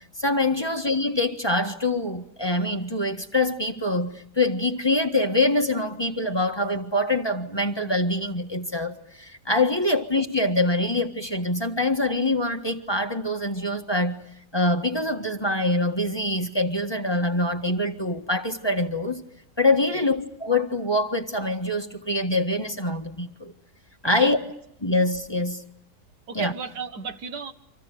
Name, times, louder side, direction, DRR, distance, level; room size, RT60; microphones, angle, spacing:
voice 1, 0.2-14.2 14.5-19.2 19.6-23.5 24.0-24.4 24.8-25.6 26.3-26.5, left 2 dB, 15° left, 1.5 m, -24 dB
voice 2, 24.1-24.5 26.3-27.5, right 5 dB, 90° right, 2.1 m, -35 dB
29.5 x 26.5 x 6.8 m
omnidirectional pair, 1.7 m